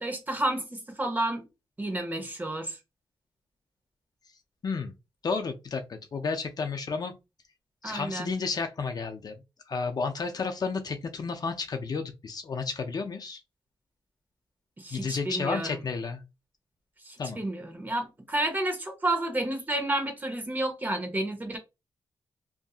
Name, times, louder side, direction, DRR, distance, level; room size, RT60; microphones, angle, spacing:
voice 1, 0.0-1.5 1.8-2.8 7.8-8.3 14.8-15.8 17.0-21.6, right 1 dB, 20° right, 1.0 m, -31 dB
voice 2, 5.2-7.2 7.8-9.3 9.7-13.4 14.9-16.2 17.2-17.4, left 4 dB, 50° left, 0.5 m, -32 dB
2.7 x 2.5 x 2.4 m
cardioid pair, 100°, 9 cm